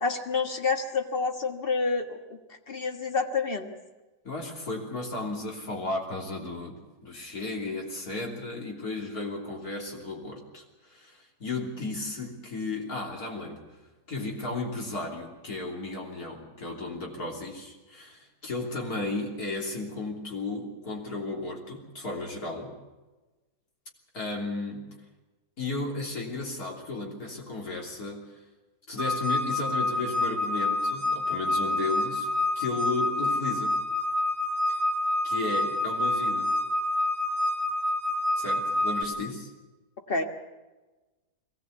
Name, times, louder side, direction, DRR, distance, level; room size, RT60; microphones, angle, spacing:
voice 1, 0.0-3.7 40.1-40.2, left 4 dB, 35° left, 4 dB, 1.7 m, -28 dB
voice 2, 4.2-13.6 14.1-22.7 24.1-24.9 25.6-28.4 28.9-32.3 32.6-33.8 35.2-36.6 38.4-39.5, left 2 dB, 70° left, 0 dB, 3.7 m, -34 dB
sound 1, 29.0-39.0, left 2 dB, 15° right, 0.7 m, -27 dB
22.0 x 17.5 x 8.1 m, 1.2 s
omnidirectional pair, 1.7 m